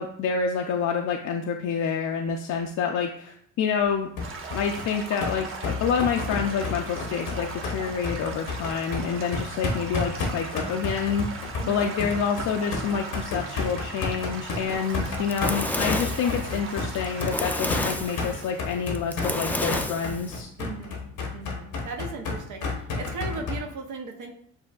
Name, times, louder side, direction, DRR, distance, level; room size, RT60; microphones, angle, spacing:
voice 1, 0.0-4.1 4.5-20.5, left 6 dB, 70° left, 2 dB, 0.5 m, -28 dB
sound 1, 4.2-23.6, left 3 dB, 85° left, 1.0 m, -31 dB
Stream / Gurgling / Trickle dribble, 4.2-19.3, right 4 dB, 45° right, 0.8 m, -39 dB
voice 2, 11.6-11.9 20.6-21.0 21.3-24.3, right 4 dB, 75° right, 2 dB, 0.7 m, -37 dB
Fire, 14.9-20.4, left 1 dB, 5° left, 0.3 m, -30 dB
7.3 x 2.7 x 2.3 m, 0.64 s
cardioid pair, 90°, 30 cm